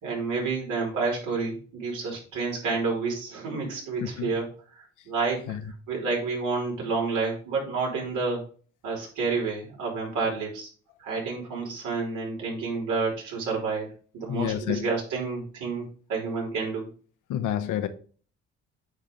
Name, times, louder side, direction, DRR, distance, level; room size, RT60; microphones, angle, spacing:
voice 1, 0.0-4.5 4.7-5.6 5.9-8.4 8.8-10.7 11.0-15.8 16.1-16.9, right 4 dB, 85° right, 3.3 m, -29 dB
voice 2, 4.0-4.3 5.5-5.6 14.3-14.9 17.3-17.9, left 10 dB, 85° left, 0.8 m, -29 dB
9.3 x 3.3 x 3.7 m
cardioid pair, 90°, 30 cm